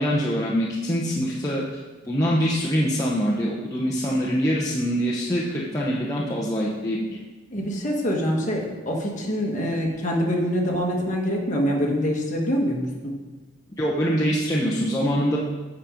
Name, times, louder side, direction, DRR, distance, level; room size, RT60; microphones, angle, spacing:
voice 1, 0.0-1.6 2.0-7.2 13.8-15.4, equal, 15° left, -6 dB, 0.7 m, -24 dB
voice 2, 7.5-13.2, equal, 35° left, -1 dB, 1.4 m, -25 dB
8.5 x 5.1 x 5.0 m, 1.3 s
head